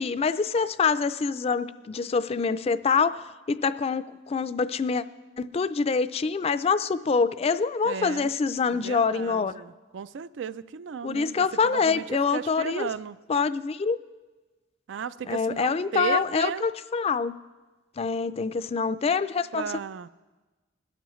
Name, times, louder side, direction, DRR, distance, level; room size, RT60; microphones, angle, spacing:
voice 1, 0.0-5.0 5.4-9.5 11.0-12.9 13.3-14.0 15.3-17.3 18.0-19.6, left 5 dB, 35° left, 14 dB, 0.4 m, -25 dB
voice 2, 7.8-8.3 8.7-12.0 12.3-13.2 14.9-16.6 19.5-20.1, right 7 dB, 85° right, 15 dB, 0.4 m, -35 dB
21.0 x 12.5 x 3.1 m, 1.2 s
head